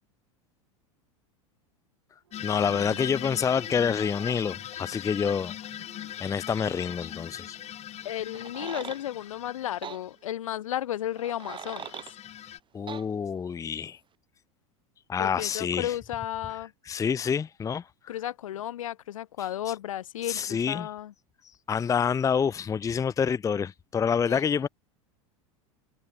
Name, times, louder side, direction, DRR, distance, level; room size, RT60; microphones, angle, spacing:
sound 1, 2.2-10.7 10.9-11.3, right 10 dB, 85° right, 7.3 m, -53 dB
sound 2, 2.3-10.1 11.2-12.6, left 12 dB, 40° left, 7.0 m, -40 dB
voice 1, 2.4-5.6 6.2-7.6 12.7-14.0 15.1-15.9 16.9-17.8 20.3-20.9 21.7-24.7, left 7 dB, 20° left, 0.6 m, -27 dB
voice 2, 8.0-12.0 15.2-16.7 18.1-21.1 24.3-24.7, left 12 dB, 80° left, 4.2 m, -34 dB
sound 3, 8.3-9.0 9.8-10.0 11.2-12.1 12.9-13.0, right 8 dB, 30° right, 2.3 m, -39 dB
hypercardioid pair, 95°, 17 cm